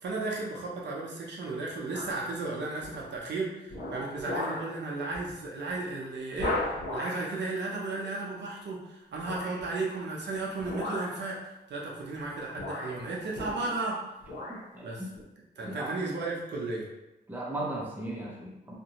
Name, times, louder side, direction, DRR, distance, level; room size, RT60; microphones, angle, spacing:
voice 1, 0.0-11.4 11.7-14.0 14.8-15.0 15.6-16.9, right 3 dB, 75° right, -3 dB, 0.6 m, -34 dB
sound 1, 1.9-2.3 2.8-3.2 3.7-4.7 5.1-5.3 5.7-5.8 6.4-7.3 9.2-9.7 10.6-11.3 12.1-12.3 12.6-13.9 14.2-14.6 15.1-15.2, left 2 dB, 70° left, 0.7 m, -36 dB
voice 2, 14.5-15.1 15.6-16.0 17.3-18.7, right 1 dB, 10° right, -4 dB, 0.6 m, -37 dB
2.4 x 2.2 x 2.8 m, 0.98 s
cardioid pair, 100°, 18 cm